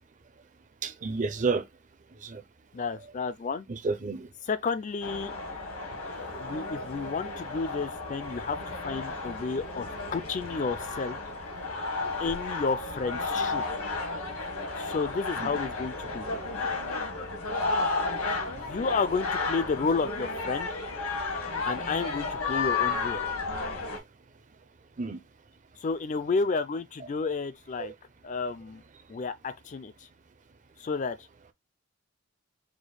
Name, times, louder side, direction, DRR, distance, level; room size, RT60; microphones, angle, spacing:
voice 1, 0.8-1.7 2.2-2.4 3.7-4.3 15.4-15.5 25.0-25.2 27.8-27.9, right 4 dB, 35° right, 0.5 m, -30 dB
voice 2, 2.7-3.7 4.5-5.3 6.4-11.2 12.2-13.6 14.8-16.3 18.5-20.8 21.7-23.2 25.8-27.9 28.2-28.8 29.1-30.1 30.8-31.3, left 4 dB, 35° left, 0.4 m, -31 dB
sound 1, 5.0-24.0, left 3 dB, 85° left, 1.3 m, -33 dB
4.9 x 2.1 x 4.0 m
head